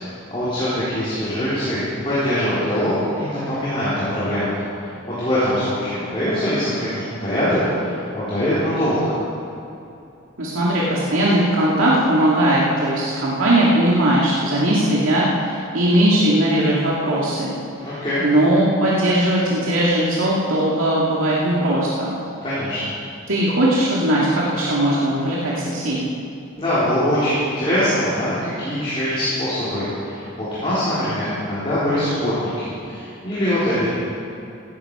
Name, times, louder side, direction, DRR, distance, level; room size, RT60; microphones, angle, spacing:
voice 1, 0.3-4.5 4.8-9.1 17.8-18.2 22.4-22.8 26.6-33.9, equal, 25° left, -12 dB, 4.1 m, -23 dB
voice 2, 10.4-17.5 17.8-18.0 18.2-22.2 23.3-26.1, right 1 dB, 85° right, -6 dB, 2.3 m, -19 dB
16.5 x 14.0 x 4.9 m, 2.7 s
head